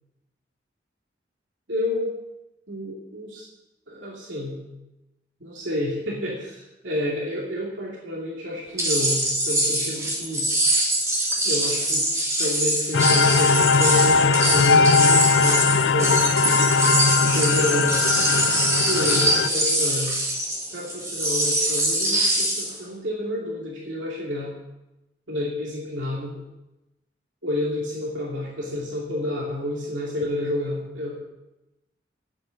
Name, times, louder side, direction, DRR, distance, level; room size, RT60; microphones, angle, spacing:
voice 1, 1.7-2.1 2.7-3.5 3.9-4.6 5.4-10.5 11.4-12.0 12.4-16.3 17.2-18.1 18.9-20.2 20.7-24.5 25.3-26.4 27.4-31.1, left 1 dB, 90° right, -4 dB, 2.7 m, -29 dB
sound 1, 8.8-22.8, right 1 dB, 15° right, 2.9 m, -23 dB
sound 2, 12.9-19.5, left 5 dB, 75° left, 0.4 m, -20 dB
9.3 x 9.0 x 9.1 m, 0.97 s
head